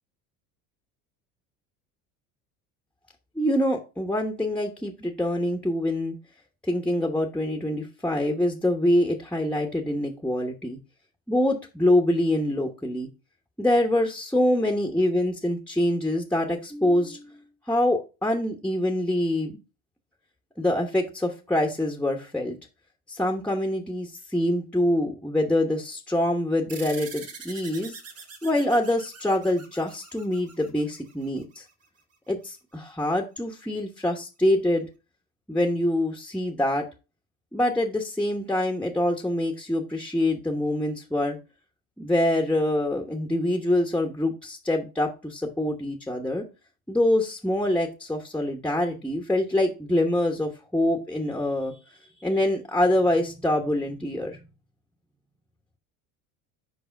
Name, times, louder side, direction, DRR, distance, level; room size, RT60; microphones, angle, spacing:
voice 1, 3.3-6.1 6.6-10.8 11.3-13.1 13.6-17.4 17.7-19.6 20.6-22.6 23.1-28.0 28.4-31.6 32.3-34.9 35.5-36.9 37.5-41.4 42.0-46.5 46.9-51.7 52.2-54.4, left 1 dB, 5° left, 3 dB, 1.1 m, -25 dB
sound 1, 26.7-31.6, right 5 dB, 35° right, 2.0 m, -44 dB
4.9 x 4.9 x 5.1 m, 0.30 s
hypercardioid pair, 80°, 41 cm